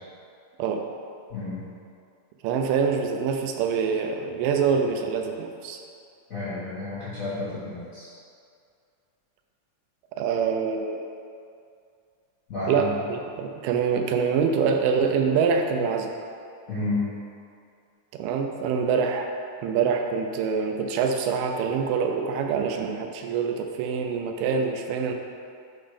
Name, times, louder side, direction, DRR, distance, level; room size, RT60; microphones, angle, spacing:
voice 1, 1.3-1.6 6.3-8.1 12.5-12.9 16.7-17.1, left 2 dB, 60° left, -11 dB, 0.8 m, -30 dB
voice 2, 2.4-5.8 10.2-11.1 12.7-16.1 18.1-19.3 19.6-25.1, right 6 dB, 85° right, 4 dB, 2.1 m, -25 dB
5.4 x 4.0 x 5.0 m, 2.4 s
omnidirectional pair, 3.9 m